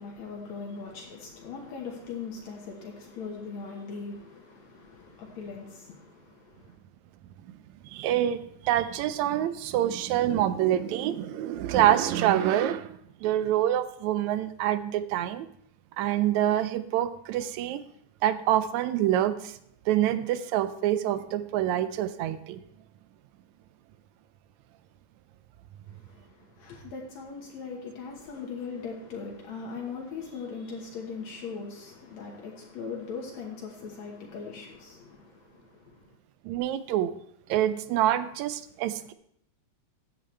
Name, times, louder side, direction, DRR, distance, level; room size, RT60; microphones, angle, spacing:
voice 1, 0.0-6.8 25.9-36.2, left 5 dB, 70° left, 2.6 m, -40 dB
voice 2, 7.8-15.5 16.0-17.8 18.2-19.6 19.9-22.6 36.4-37.1 37.5-39.1, right 12 dB, 80° right, 1.9 m, -26 dB
15.0 x 9.2 x 3.3 m
omnidirectional pair, 3.3 m